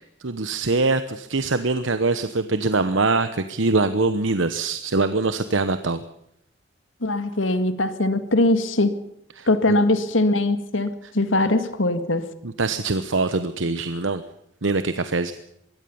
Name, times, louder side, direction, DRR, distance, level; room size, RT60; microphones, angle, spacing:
voice 1, 0.2-6.0 9.4-9.5 12.6-14.2 14.6-15.3, right 3 dB, 80° right, 11 dB, 1.1 m, -23 dB
voice 2, 7.0-9.0 9.5-12.3, left 2 dB, 85° left, 10 dB, 2.0 m, -21 dB
22.5 x 16.5 x 7.1 m, 0.73 s
head